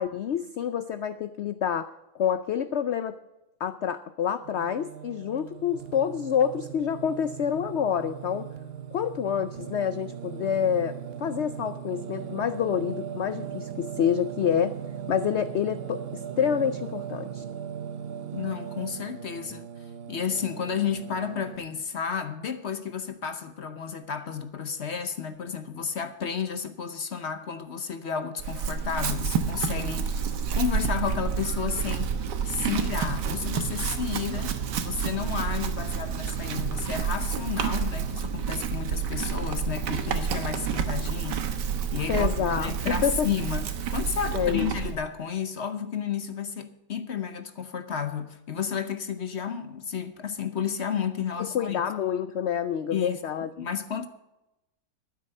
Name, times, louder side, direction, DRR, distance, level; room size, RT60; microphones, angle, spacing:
voice 1, 0.0-3.2 3.6-8.5 8.9-14.8 15.1-17.4 42.1-43.3 44.3-44.7 51.5-53.5, left 8 dB, 85° left, 0.6 m, -27 dB
Singing, 4.4-21.6, right 8 dB, 65° right, 0.6 m, -38 dB
voice 2, 18.3-19.7 20.1-32.2 32.4-51.8 52.9-54.1, left 7 dB, 50° left, 0.9 m, -32 dB
Chewing mastication / Livestock farm animals working animals, 28.4-45.0, right 7 dB, 90° right, 1.7 m, -29 dB
12.5 x 9.3 x 6.5 m
omnidirectional pair, 1.8 m